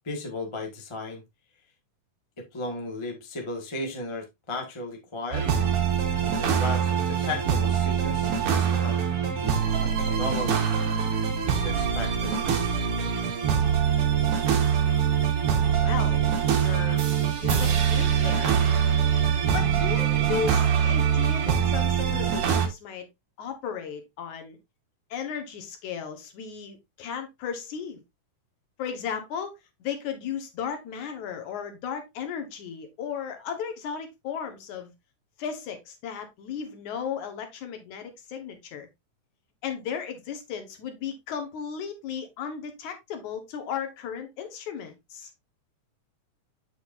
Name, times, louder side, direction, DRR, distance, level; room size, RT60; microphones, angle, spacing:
voice 1, 0.0-1.2 2.4-5.5 6.3-9.0 9.8-10.6 11.5-12.4, left 2 dB, 35° left, 0.4 m, -35 dB
sound 1, 5.3-22.7, right 8 dB, 55° right, 1.8 m, -24 dB
voice 2, 15.8-16.2 16.6-17.0 17.4-18.6 19.2-23.1 23.4-24.6 25.1-28.0 28.8-29.5 29.8-34.9 35.4-38.9 39.6-45.3, left 7 dB, 70° left, 2.6 m, -35 dB
8.0 x 6.3 x 2.5 m
omnidirectional pair, 3.7 m